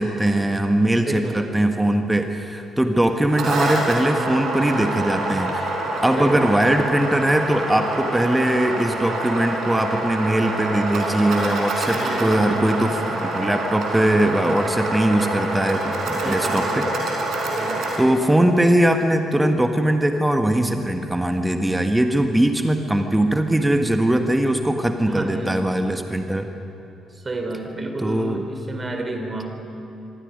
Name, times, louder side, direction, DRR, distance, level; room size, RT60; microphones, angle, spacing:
voice 1, 0.0-5.8 6.0-16.8 18.0-26.5 28.0-28.4, right 1 dB, 10° right, 6 dB, 1.6 m, -21 dB
voice 2, 0.9-1.6 6.2-6.5 11.9-13.1 16.2-16.9 17.5-17.9 25.1-25.7 27.1-29.5, right 2 dB, 25° right, 4 dB, 4.0 m, -30 dB
sound 1, 3.1-18.0, right 2 dB, 55° right, 5.1 m, -26 dB
25.5 x 24.5 x 5.3 m, 2.9 s
figure-of-eight pair, 45°, 0 cm